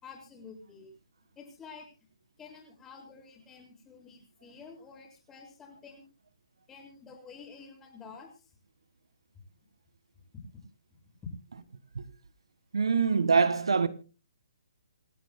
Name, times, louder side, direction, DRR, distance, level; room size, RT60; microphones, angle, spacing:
voice 1, 0.0-0.9 1.3-1.9 2.4-6.1 6.7-8.5 10.3-10.4 10.9-11.3, left 5 dB, 15° left, 6.8 m, -49 dB
voice 2, 12.7-13.9, right 5 dB, 85° right, 1.7 m, -24 dB
28.0 x 12.5 x 2.2 m
hypercardioid pair, 155°, 3 cm